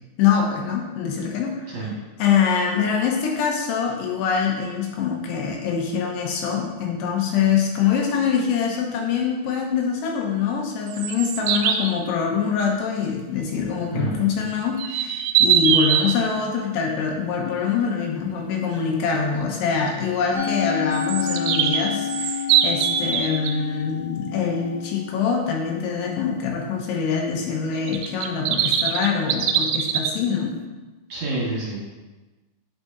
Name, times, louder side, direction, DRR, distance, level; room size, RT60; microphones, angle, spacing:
voice 1, 0.2-1.9 2.2-30.6, left 6 dB, 80° left, 0 dB, 3.1 m, -24 dB
sound 1, 10.9-11.9 14.8-16.1 20.9-23.5 27.9-30.1, right 9 dB, 80° right, 2.4 m, -22 dB
voice 2, 13.9-14.2 31.1-31.9, right 2 dB, 55° right, -6 dB, 2.1 m, -28 dB
Musical instrument, 20.3-26.7, left 8 dB, 30° left, 1.8 m, -30 dB
8.2 x 7.7 x 2.7 m, 1.2 s
omnidirectional pair, 4.9 m